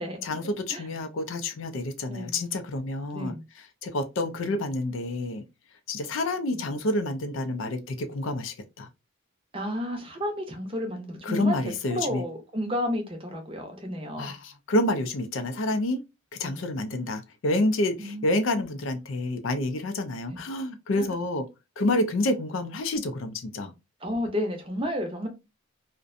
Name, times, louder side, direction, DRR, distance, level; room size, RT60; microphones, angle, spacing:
voice 1, 0.2-3.3 3.8-5.4 5.9-8.9 11.2-12.2 14.2-16.0 16.4-21.4 21.8-23.7, left 1 dB, 70° left, 0.4 m, -28 dB
voice 2, 2.1-2.5 3.1-3.4 6.5-6.6 9.5-11.5 11.9-14.3 16.4-16.7 18.0-18.2 18.5-18.6 20.3-20.4 20.9-21.2 24.0-25.3, equal, 25° right, 0.6 m, -32 dB
2.5 x 2.1 x 2.4 m
head